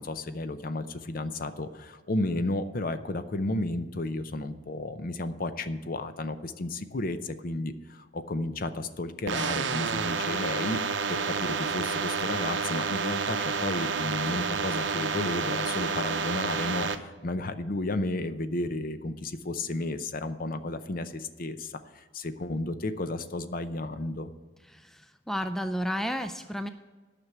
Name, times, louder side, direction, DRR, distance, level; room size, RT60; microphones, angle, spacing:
voice 1, 0.0-10.8 11.1-24.3, left 2 dB, 45° left, 11 dB, 0.6 m, -33 dB
sound 1, 9.3-17.0, right 5 dB, 65° right, 0.7 m, -29 dB
voice 2, 24.6-26.7, equal, ahead, 9 dB, 0.3 m, -32 dB
9.7 x 6.0 x 8.2 m, 1.3 s
head